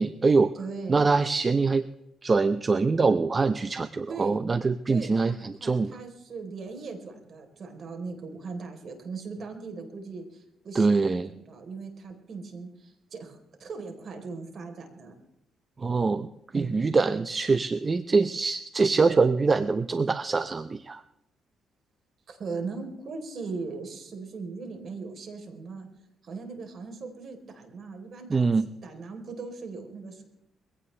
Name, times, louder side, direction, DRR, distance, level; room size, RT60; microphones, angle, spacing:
voice 1, 0.0-0.5 0.9-1.9 2.2-5.9 10.7-11.3 15.8-21.0 28.3-28.7, right 4 dB, 30° right, 12 dB, 0.7 m, -24 dB
voice 2, 0.6-1.1 4.1-4.4 4.9-15.1 16.5-16.8 22.3-25.9 26.2-28.5 28.8-30.2, right 4 dB, 55° right, 5 dB, 3.8 m, -39 dB
22.0 x 16.5 x 3.4 m, 0.87 s
cardioid pair, 90°, 0 cm